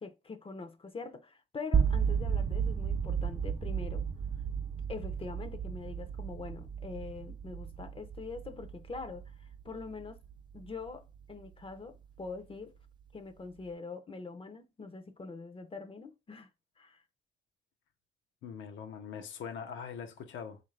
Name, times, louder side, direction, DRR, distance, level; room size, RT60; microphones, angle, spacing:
voice 1, 0.0-4.1 4.9-10.2 10.5-12.7 13.1-16.5 16.8-17.0, left 4 dB, 25° left, 0.6 m, -44 dB
sound 1, 1.7-11.7, right 7 dB, 25° right, 0.4 m, -34 dB
voice 2, 18.4-20.6, left 7 dB, 75° left, 0.7 m, -42 dB
3.7 x 2.6 x 3.2 m
cardioid pair, 90°, 20 cm